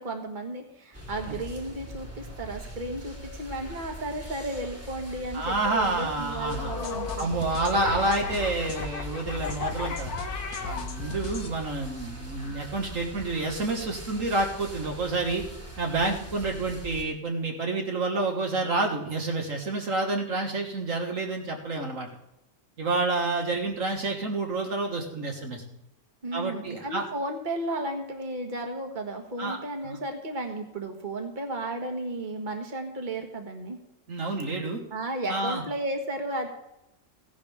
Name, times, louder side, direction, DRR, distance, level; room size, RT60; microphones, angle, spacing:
voice 1, 0.0-7.4 26.2-33.8 34.9-36.5, right 1 dB, 30° right, 4 dB, 1.7 m, -34 dB
sound 1, 0.9-17.0, equal, 10° right, 1.8 m, -42 dB
voice 2, 5.3-6.7 7.2-10.2 10.6-15.4 15.8-22.1 22.8-25.6 26.3-27.1 29.4-29.6 29.8-30.0 34.1-34.8 35.3-35.6, right 2 dB, 60° right, 1 dB, 1.8 m, -29 dB
sound 2, 6.5-11.5, left 4 dB, 80° left, 1.8 m, -34 dB
16.0 x 11.0 x 3.5 m, 0.88 s
omnidirectional pair, 1.6 m